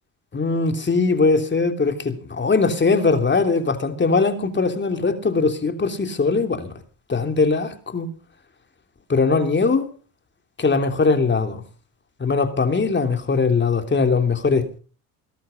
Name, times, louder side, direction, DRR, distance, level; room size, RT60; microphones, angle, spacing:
voice 1, 0.3-6.7 7.1-8.1 9.1-9.9 10.6-11.6 12.2-14.8, left 4 dB, 25° left, 3.0 m, -20 dB
18.5 x 12.0 x 5.2 m
supercardioid pair, 80°, 41 cm